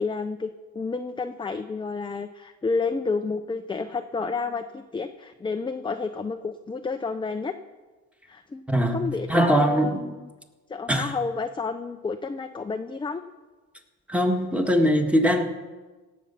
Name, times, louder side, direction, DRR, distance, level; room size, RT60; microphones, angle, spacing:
voice 1, 0.0-7.5 8.3-8.6 8.9-10.3 10.7-13.2, left 4 dB, 15° left, 0.5 m, -30 dB
voice 2, 8.7-10.0 10.9-11.1 14.1-15.4, equal, 5° right, 1.5 m, -21 dB
17.5 x 7.2 x 5.6 m
cardioid pair, 90°, 30 cm